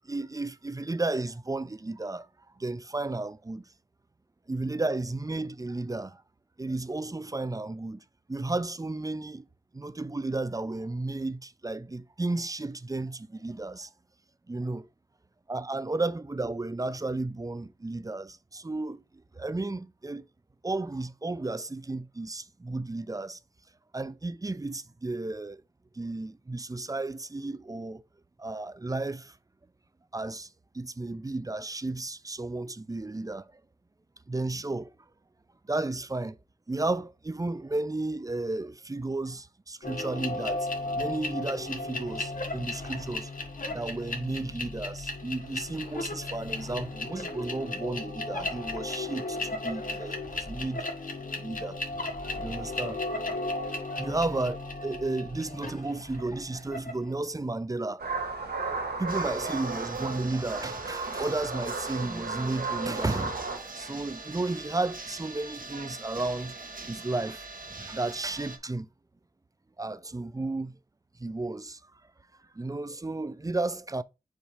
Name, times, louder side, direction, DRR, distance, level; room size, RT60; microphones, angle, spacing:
voice 1, 0.0-2.3 2.6-3.6 4.5-6.2 6.6-9.4 9.7-13.9 14.5-14.9 15.5-19.0 19.3-20.2 20.6-23.4 23.9-25.6 25.9-28.0 28.4-29.4 30.1-33.6 34.3-34.9 35.6-36.4 36.7-43.3 43.7-50.9 51.3-51.8 52.2-53.0 53.7-58.1 59.0-63.3 63.7-68.9 69.8-70.7 71.2-71.8 72.5-74.0, right 2 dB, 20° right, 0.5 m, -33 dB
sound 1, 39.8-57.1, left 2 dB, 60° left, 1.6 m, -35 dB
sound 2, 58.0-63.6, right 3 dB, 75° right, 1.7 m, -34 dB
sound 3, 59.1-68.6, right 3 dB, 60° right, 1.3 m, -43 dB
7.1 x 2.7 x 4.9 m
cardioid pair, 45°, 16 cm